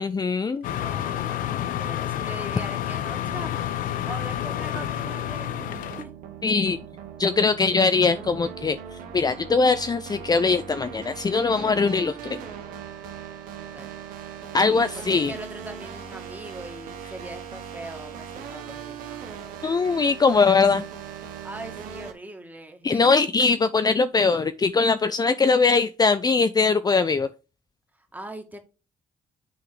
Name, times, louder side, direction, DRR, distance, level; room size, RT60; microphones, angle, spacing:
voice 1, 0.0-0.7 6.4-6.8 7.2-12.4 14.5-15.3 19.6-20.8 22.8-27.3, left 4 dB, 30° left, 0.5 m, -21 dB
sound 1, 0.6-6.0, left 11 dB, 85° left, 0.6 m, -29 dB
voice 2, 0.6-3.7 4.0-6.1 13.7-13.9 14.6-19.2 21.4-23.2 28.0-28.6, right 1 dB, 10° right, 2.0 m, -41 dB
sound 2, 3.2-22.1, right 8 dB, 85° right, 1.1 m, -40 dB
8.5 x 3.8 x 4.8 m
supercardioid pair, 65°, 14 cm